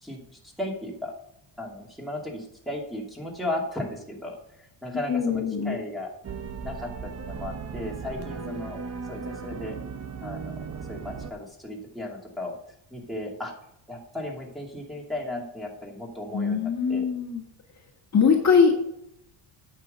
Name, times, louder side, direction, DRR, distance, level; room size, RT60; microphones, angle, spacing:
voice 1, 0.0-1.1 1.6-6.1 6.6-8.8 9.1-9.8 10.2-10.6 10.9-12.5 12.9-13.5 13.9-17.1, left 1 dB, ahead, -3 dB, 2.6 m, -35 dB
voice 2, 5.1-5.8 16.3-17.4 18.1-18.7, left 6 dB, 35° left, 0 dB, 2.0 m, -22 dB
sound 1, 6.2-11.3, right 5 dB, 30° right, 0.9 m, -36 dB
9.3 x 6.0 x 6.7 m, 0.77 s
cardioid pair, 130°, 47 cm